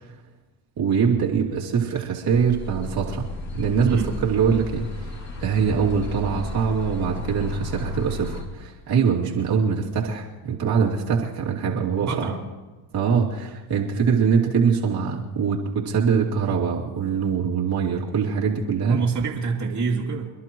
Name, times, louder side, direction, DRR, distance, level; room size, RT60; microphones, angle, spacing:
voice 1, 0.8-3.2 3.5-5.1 5.4-12.3 12.9-19.0, right 6 dB, 50° right, -3 dB, 2.8 m, -23 dB
sound 1, 2.3-8.4, left 2 dB, 35° left, 2.8 m, -34 dB
voice 2, 12.0-12.4 18.9-20.3, right 4 dB, 35° right, -1 dB, 2.8 m, -26 dB
28.0 x 11.5 x 3.1 m, 1.2 s
supercardioid pair, 80°, 47 cm